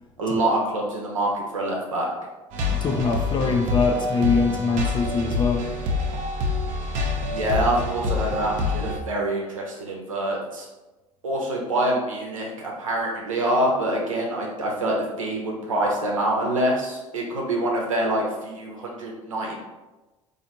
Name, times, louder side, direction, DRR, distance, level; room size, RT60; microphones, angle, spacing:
voice 1, 0.2-2.1 7.3-10.7 11.2-19.6, right 1 dB, 85° right, -1 dB, 0.8 m, -25 dB
sound 1, 2.5-9.0, left 3 dB, 50° right, 0.8 m, -26 dB
voice 2, 2.8-5.7, left 4 dB, 30° left, 2 dB, 0.5 m, -23 dB
4.1 x 2.7 x 2.8 m, 1.1 s
figure-of-eight pair, 65°, 17 cm